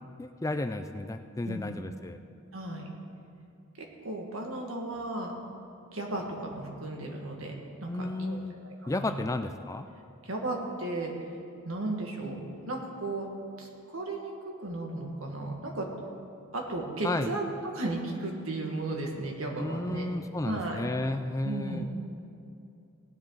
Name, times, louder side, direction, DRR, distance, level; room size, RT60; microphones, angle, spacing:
voice 1, 0.2-2.2 7.9-8.6 8.9-9.9 17.0-17.3 19.6-21.8, left 2 dB, 15° left, 8 dB, 0.3 m, -33 dB
voice 2, 2.5-2.9 3.8-5.3 5.9-7.5 7.8-7.9 8.2-8.4 8.6-9.2 10.2-11.3 11.6-12.4 12.7-13.3 13.6-14.3 14.6-15.9 16.5-17.5 17.7-20.1 20.4-20.8 21.4-21.9, right 2 dB, 80° right, 0 dB, 1.9 m, -35 dB
18.5 x 10.5 x 4.0 m, 2.5 s
head